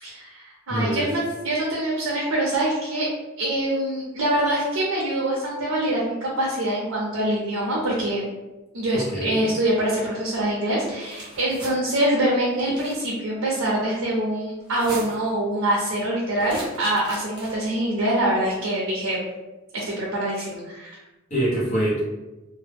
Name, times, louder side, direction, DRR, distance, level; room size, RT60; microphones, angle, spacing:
voice 1, 0.0-3.1 3.4-8.3 8.7-19.2 19.7-21.0, right 1 dB, 80° right, -4 dB, 0.6 m, -24 dB
voice 2, 0.7-1.1 8.9-9.4 21.3-22.0, right 1 dB, 35° left, -7 dB, 0.9 m, -24 dB
sound 1, 10.7-11.7 12.5-13.1 14.6-15.3 16.4-17.7, right 1 dB, 20° right, 0.6 m, -39 dB
2.1 x 2.1 x 3.3 m, 1.1 s
head